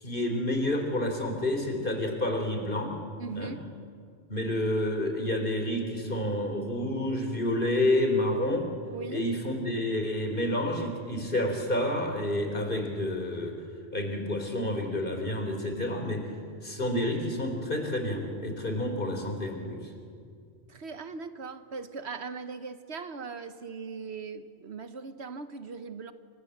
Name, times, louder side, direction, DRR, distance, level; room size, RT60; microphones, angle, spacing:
voice 1, 0.0-2.9 3.3-3.5 4.3-8.7 9.1-13.6 13.9-16.3 16.6-19.9, left 1 dB, 45° left, 4 dB, 3.8 m, -29 dB
voice 2, 3.2-3.6 8.9-9.3 20.7-26.1, right 4 dB, 65° right, 10 dB, 1.3 m, -39 dB
29.0 x 25.0 x 8.0 m, 2.3 s
omnidirectional pair, 1.2 m